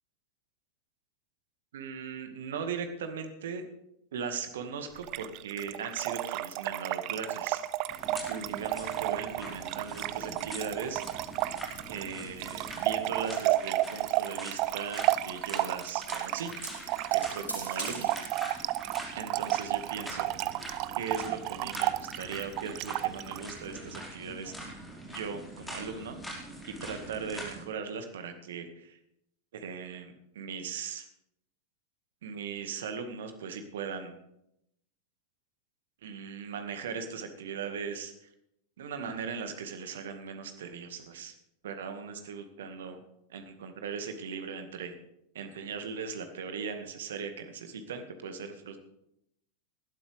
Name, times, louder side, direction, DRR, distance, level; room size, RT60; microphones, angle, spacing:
voice 1, 1.7-3.6 4.1-7.6 8.3-11.0 11.9-16.5 17.1-18.1 18.4-18.5 19.2-20.6 20.9-24.5 25.1-26.2 26.6-29.0 29.5-31.0 32.2-34.1 36.0-38.1 38.8-41.3 41.6-43.0 43.3-44.9 45.3-48.8, right 6 dB, 60° right, 7 dB, 2.0 m, -38 dB
Trickle dribble / Fill (with liquid), 5.0-23.5, right 16 dB, 40° right, 0.5 m, -32 dB
sound 1, 7.9-27.6, right 1 dB, 5° left, 5.0 m, -44 dB
sound 2, 9.6-19.0, right 2 dB, 90° left, 5.4 m, -49 dB
19.5 x 12.0 x 3.5 m, 0.81 s
figure-of-eight pair, 90°, 0 cm